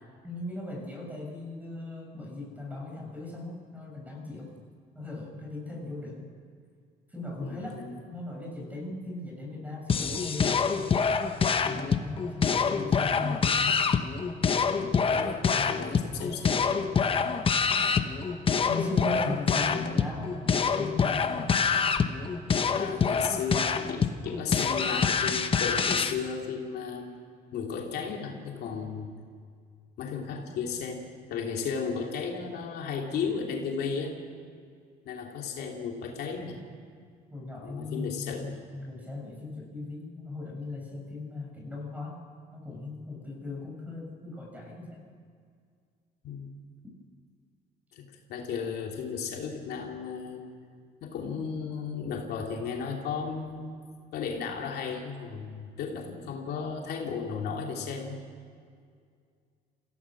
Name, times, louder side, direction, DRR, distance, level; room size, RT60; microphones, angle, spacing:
voice 1, 0.2-4.5 4.9-6.3 7.1-7.8 8.1-11.1 11.7-13.8 18.6-21.5 37.3-42.2 42.5-45.0, left 2 dB, 10° right, 0 dB, 6.5 m, -38 dB
voice 2, 7.4-8.0 14.5-16.9 19.7-19.9 22.6-27.1 27.5-29.1 30.0-34.2 35.0-36.6 37.6-38.6 46.2-46.5 47.9-50.5 51.0-53.7 54.1-58.2, left 6 dB, 75° left, 1 dB, 2.9 m, -35 dB
sound 1, 9.9-26.1, left 5 dB, 30° left, 1.1 m, -26 dB
27.5 x 16.5 x 6.2 m, 2.2 s
cardioid pair, 110°, 17 cm